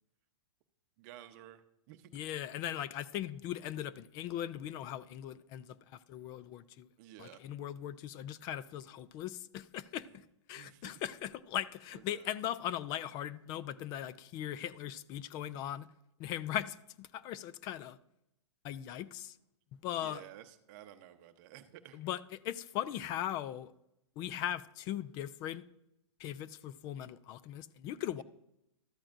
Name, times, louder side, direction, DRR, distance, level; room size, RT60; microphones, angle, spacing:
voice 1, 1.0-1.6 1.9-2.2 7.0-7.4 10.5-10.9 11.9-12.3 20.0-22.0 28.2-28.3, right 12 dB, 40° right, 0.8 m, -53 dB
voice 2, 2.1-6.9 7.2-15.9 16.2-18.0 18.6-19.4 19.8-20.2 21.9-23.7 24.2-25.6 26.2-28.2, left 11 dB, 25° left, 0.3 m, -39 dB
13.5 x 13.0 x 2.6 m
hypercardioid pair, 150°, 15 cm